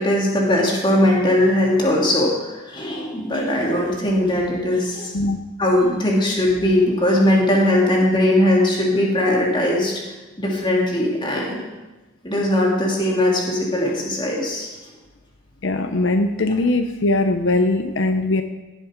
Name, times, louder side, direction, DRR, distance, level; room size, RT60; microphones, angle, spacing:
voice 1, 0.0-5.1 5.6-9.9 10.4-11.6 12.2-14.7, left 1 dB, 25° left, -2 dB, 2.7 m, -19 dB
voice 2, 15.6-18.4, left 2 dB, 80° left, 7 dB, 0.7 m, -20 dB
17.5 x 7.6 x 5.1 m, 1.1 s
head